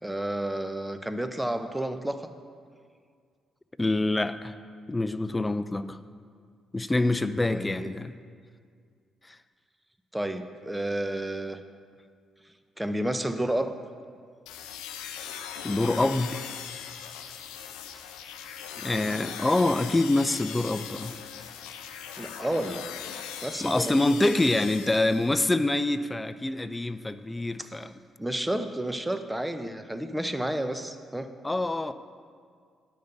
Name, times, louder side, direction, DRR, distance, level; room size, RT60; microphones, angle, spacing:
voice 1, 0.0-2.3 7.5-7.9 10.1-11.6 12.8-13.7 22.2-22.8 23.4-23.9 27.6-27.7 28.2-31.3, right 1 dB, 10° right, 9 dB, 0.8 m, -31 dB
voice 2, 3.8-4.5 4.9-6.0 6.7-8.1 9.3-9.4 15.6-16.5 18.8-21.1 23.6-27.9 31.4-31.9, left 2 dB, 20° left, 12 dB, 0.5 m, -26 dB
sound 1, 14.5-25.6, left 8 dB, 85° left, 0.6 m, -40 dB
10.0 x 5.4 x 8.2 m, 2.1 s
hypercardioid pair, 50°, 0 cm